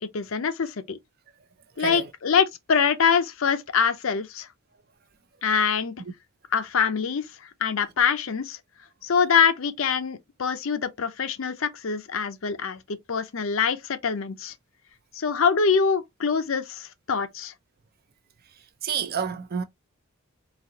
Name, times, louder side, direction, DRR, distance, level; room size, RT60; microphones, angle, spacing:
voice 1, 0.1-1.0 1.8-4.5 5.4-5.9 6.5-7.3 7.6-8.6 9.0-14.5 15.1-17.5, left 6 dB, 65° left, 0.6 m, -24 dB
voice 2, 1.8-2.1 18.8-19.6, right 7 dB, 45° right, 0.5 m, -29 dB
4.0 x 2.7 x 2.8 m
head